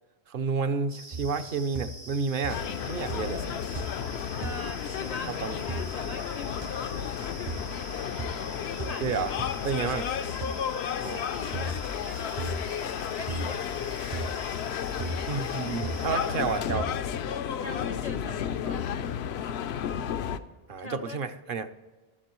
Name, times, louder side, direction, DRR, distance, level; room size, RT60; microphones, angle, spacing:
voice 1, 0.3-3.4 5.4-5.5 9.0-9.3 9.6-10.0 11.0-11.4 15.3-16.9 20.7-21.7, right 5 dB, 60° right, 8 dB, 0.8 m, -30 dB
sound 1, 0.9-16.6, right 1 dB, 85° right, 2.1 m, -46 dB
sound 2, 1.1-1.5 1.7-2.2 2.4-2.8 3.1-3.5 3.7-4.1 4.4-4.6 5.7-5.9 6.6-6.7 7.5-7.7 8.2-8.4 8.8-9.0 9.4-9.5 10.4-10.6 11.5-11.8 12.4-12.7 13.3-13.6 14.1-14.3 15.0-15.3 15.8-16.1 16.7-16.9, right 2 dB, 40° right, 0.4 m, -35 dB
sound 3, 2.5-20.4, left 8 dB, 90° left, 0.8 m, -33 dB
voice 2, 2.6-2.9 4.4-7.6 8.7-9.4 9.9-10.3 10.8-12.6 13.1-14.4 15.2-15.4 16.1-16.4 17.6-18.9 20.8-21.2, left 3 dB, 50° left, 9 dB, 0.5 m, -42 dB
20.5 x 7.3 x 3.0 m, 1.3 s
omnidirectional pair, 1.0 m